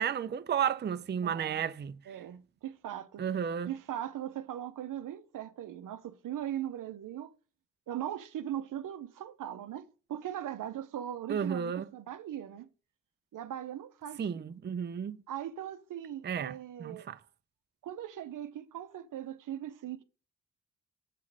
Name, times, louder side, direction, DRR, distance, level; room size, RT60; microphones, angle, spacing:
voice 1, 0.0-1.9 3.2-3.7 11.3-11.9 14.2-15.2 16.2-16.5 16.8-17.2, right 8 dB, 30° right, 0.5 m, -32 dB
voice 2, 1.2-1.7 2.1-3.3 3.7-7.3 7.9-12.7 13.3-14.5 15.3-17.1 17.8-20.0, right 11 dB, 70° right, 0.7 m, -39 dB
7.4 x 3.8 x 6.3 m
supercardioid pair, 45°, 33 cm